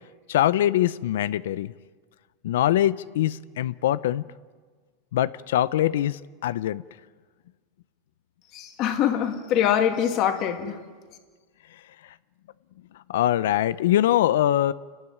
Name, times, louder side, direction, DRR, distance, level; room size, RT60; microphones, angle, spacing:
voice 1, 0.3-1.7 2.4-4.2 5.1-6.8 13.1-14.7, left 12 dB, 80° left, 16 dB, 0.6 m, -23 dB
voice 2, 8.5-10.8, left 9 dB, 35° left, 5 dB, 2.2 m, -24 dB
29.5 x 12.0 x 9.8 m, 1.5 s
supercardioid pair, 165°, 0 cm